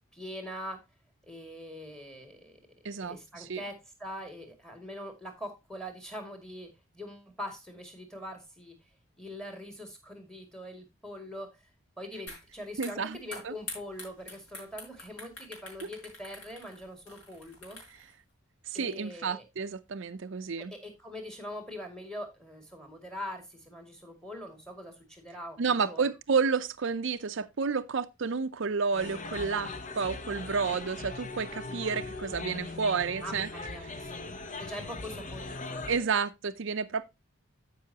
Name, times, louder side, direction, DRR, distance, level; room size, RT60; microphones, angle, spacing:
voice 1, 0.1-0.8 1.2-2.6 3.0-8.9 9.2-11.6 12.0-17.8 18.7-19.4 20.6-26.0 33.2-34.2 34.6-36.0, equal, 5° left, 2.2 m, -43 dB
voice 2, 2.8-3.6 12.8-13.2 13.4-13.5 15.8-15.9 18.7-20.7 25.6-33.5 33.8-33.9 35.9-37.1, right 5 dB, 60° right, 0.5 m, -31 dB
sound 1, 12.3-12.4 12.7-18.1, left 2 dB, 60° left, 5.1 m, -45 dB
sound 2, 28.9-36.0, left 3 dB, 35° left, 0.8 m, -40 dB
14.0 x 5.6 x 2.8 m
head